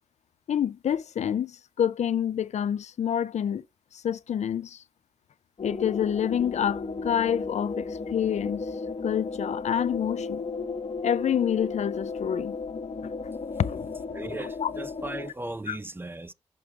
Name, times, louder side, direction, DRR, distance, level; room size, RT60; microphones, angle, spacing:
voice 1, 0.5-3.6 3.9-4.8 5.6-8.6 9.0-10.4 11.0-12.6 13.6-14.0 14.6-14.7 15.7-15.8, left 9 dB, 80° left, 0.5 m, -27 dB
sound 1, 5.6-15.3, left 4 dB, 55° left, 0.9 m, -34 dB
voice 2, 14.1-16.3, right 2 dB, 20° right, 0.6 m, -37 dB
6.2 x 6.0 x 3.2 m
cardioid pair, 55°, 12 cm